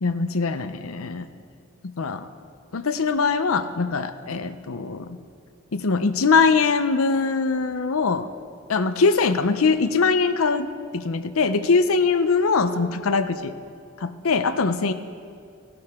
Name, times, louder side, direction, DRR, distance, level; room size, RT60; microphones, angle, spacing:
voice 1, 0.0-1.3 2.0-2.3 2.7-5.2 5.7-8.3 8.7-10.7 10.9-13.5 14.0-14.9, left 4 dB, 90° left, 11 dB, 0.7 m, -22 dB
17.0 x 12.5 x 3.7 m, 2.3 s
head